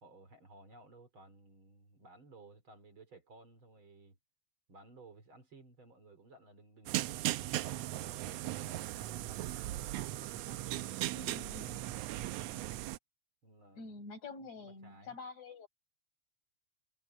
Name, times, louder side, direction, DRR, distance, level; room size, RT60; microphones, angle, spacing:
voice 1, 0.0-4.2 4.7-12.7 13.4-14.0 14.6-15.2, right 2 dB, 40° right, 4.3 m, -58 dB
sound 1, 6.9-13.0, right 15 dB, 80° right, 1.5 m, -38 dB
voice 2, 11.2-11.8 13.7-15.7, left 3 dB, 65° left, 6.5 m, -47 dB
omnidirectional pair, 3.4 m